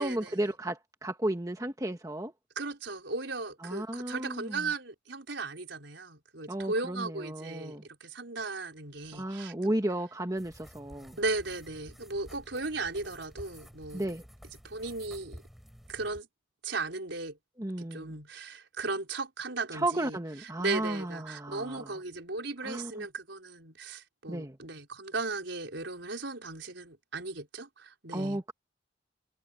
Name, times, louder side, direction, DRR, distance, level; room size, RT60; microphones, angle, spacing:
voice 1, 0.0-2.3 3.6-4.7 6.5-7.9 9.1-11.2 13.9-14.2 17.6-18.1 19.7-21.9 22.6-22.9 24.3-24.6 28.1-28.5, right 1 dB, 20° right, 1.4 m, -33 dB
voice 2, 2.6-9.7 11.2-14.1 14.4-15.4 15.9-16.3 16.6-17.4 17.8-28.4, right 3 dB, 80° right, 4.5 m, -36 dB
sound 1, 10.4-16.2, equal, ahead, 5.1 m, -51 dB
head